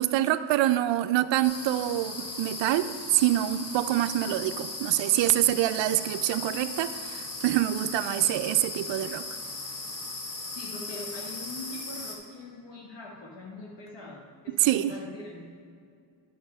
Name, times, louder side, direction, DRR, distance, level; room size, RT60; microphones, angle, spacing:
voice 1, 0.0-9.2 14.5-14.9, right 13 dB, 70° right, 10 dB, 0.5 m, -26 dB
sound 1, 1.4-12.2, left 2 dB, 45° left, 2.0 m, -38 dB
voice 2, 10.5-15.7, left 2 dB, 65° left, -3 dB, 1.5 m, -43 dB
9.5 x 6.4 x 5.4 m, 2.3 s
cardioid pair, 75°, 46 cm